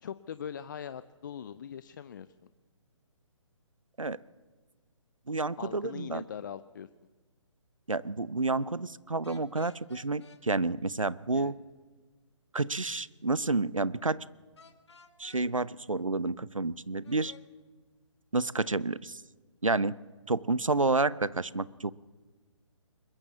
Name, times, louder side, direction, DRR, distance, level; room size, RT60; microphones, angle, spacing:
voice 1, 0.0-2.5 5.6-6.9 11.3-11.5, left 8 dB, 40° left, 14 dB, 0.6 m, -41 dB
voice 2, 5.3-6.2 7.9-11.5 12.5-14.2 15.2-17.3 18.3-19.2 19.6-19.9 20.3-21.9, right 3 dB, 90° right, 20 dB, 0.8 m, -30 dB
sound 1, 9.2-10.4 14.6-15.4 17.0-17.4, left 5 dB, 60° left, 2.4 m, -55 dB
22.0 x 21.0 x 7.1 m, 1.4 s
figure-of-eight pair, 140°, 16 cm